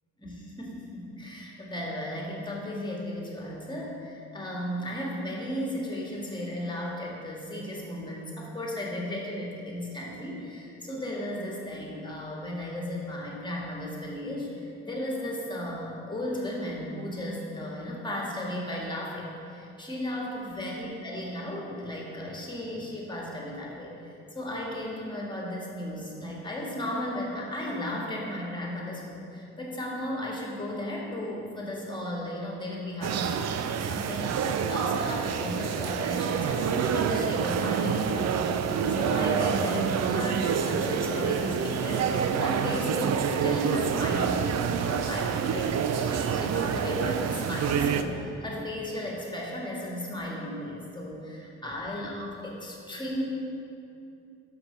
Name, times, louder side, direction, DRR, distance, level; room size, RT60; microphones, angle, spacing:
voice 1, 0.2-53.2, left 1 dB, 15° left, -3 dB, 1.8 m, -35 dB
sound 1, 33.0-48.0, right 7 dB, 60° right, 0.5 m, -27 dB
5.9 x 5.7 x 6.7 m, 2.6 s
cardioid pair, 90°, 30 cm